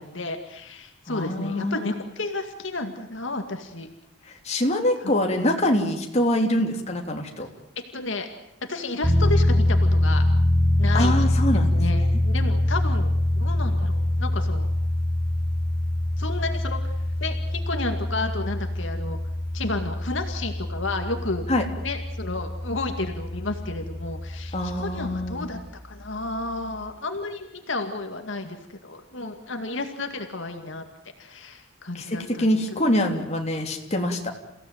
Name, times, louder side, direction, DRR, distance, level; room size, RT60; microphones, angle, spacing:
voice 1, 0.0-3.9 5.0-5.1 7.9-8.3 8.7-10.2 10.8-11.3 11.7-13.1 13.4-14.7 16.2-17.0 17.2-19.2 19.5-21.4 21.8-25.6 25.8-28.6 28.8-30.8 31.2-32.8, left 2 dB, 70° left, 5 dB, 2.2 m, -32 dB
voice 2, 1.1-1.9 4.4-7.5 10.9-11.8 21.5-21.6 24.5-25.5 31.9-34.3, left 1 dB, 35° left, 2 dB, 3.3 m, -24 dB
sound 1, 9.0-25.4, left 1 dB, 5° left, 7.6 m, -24 dB
29.5 x 16.5 x 9.3 m, 0.85 s
head